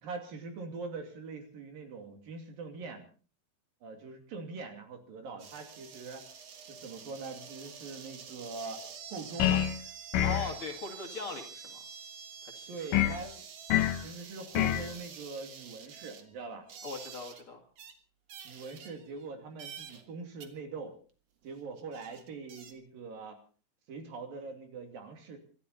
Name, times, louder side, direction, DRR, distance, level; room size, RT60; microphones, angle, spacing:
voice 1, 0.0-3.0 3.8-6.2 6.7-8.8 9.1-9.6 12.7-13.5 14.0-16.6 18.4-21.0 21.4-23.4 23.9-25.4, right 4 dB, 65° right, 5 dB, 4.3 m, -43 dB
sound 1, 5.4-17.4 17.8-17.9 18.3-19.3 19.6-20.1 20.4-20.5 21.4-21.5 21.8-22.7, right 7 dB, 50° right, 2.1 m, -48 dB
sound 2, 9.4-9.8 10.1-10.5 12.9-13.2 13.7-14.0 14.5-14.9, left 11 dB, 70° left, 2.7 m, -26 dB
voice 2, 10.2-11.8 12.4-13.0 16.8-17.6, left 3 dB, 40° left, 2 dB, 2.5 m, -40 dB
26.0 x 13.0 x 4.1 m, 0.39 s
omnidirectional pair, 4.4 m